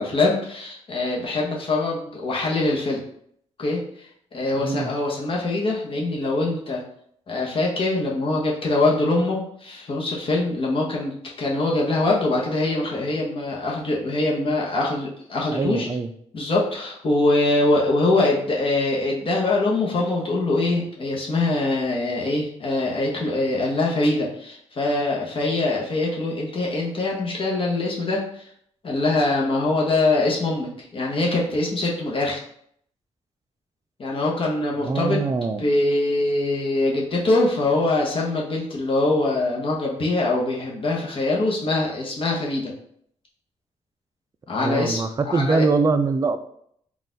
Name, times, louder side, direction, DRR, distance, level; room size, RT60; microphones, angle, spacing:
voice 1, 0.0-3.0 3.6-6.8 7.3-15.9 16.3-28.5 28.8-32.4 34.0-35.2 35.6-42.7 44.5-45.7, left 2 dB, 45° left, -3 dB, 1.0 m, -23 dB
voice 2, 4.6-4.9 15.5-16.1 34.8-35.7 44.6-46.4, right 4 dB, 25° right, 10 dB, 0.3 m, -23 dB
4.0 x 2.4 x 3.9 m, 0.67 s
cardioid pair, 100°, 12 cm